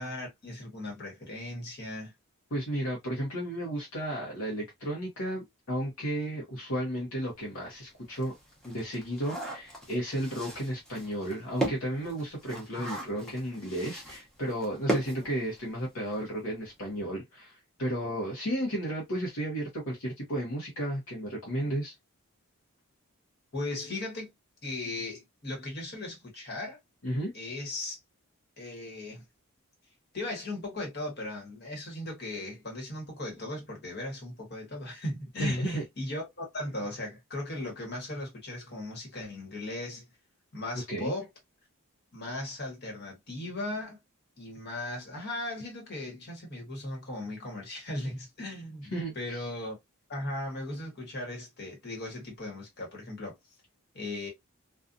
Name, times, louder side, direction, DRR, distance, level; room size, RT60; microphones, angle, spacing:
voice 1, 0.0-2.1 12.7-13.3 23.5-24.3 24.6-26.8 27.3-28.0 28.6-29.2 30.1-40.0 40.5-41.3 42.1-44.0 44.4-49.8 50.1-53.4 53.9-54.3, left 1 dB, 45° left, 1.2 m, -37 dB
voice 2, 2.5-8.3 8.6-21.9 27.0-27.3 35.4-35.8 40.9-41.1 48.9-49.5, right 1 dB, 65° left, 0.8 m, -33 dB
sound 1, 7.4-7.5 7.9-16.0 16.3-16.4 16.7-16.9, right 1 dB, 5° left, 0.7 m, -37 dB
2.5 x 2.3 x 2.5 m
head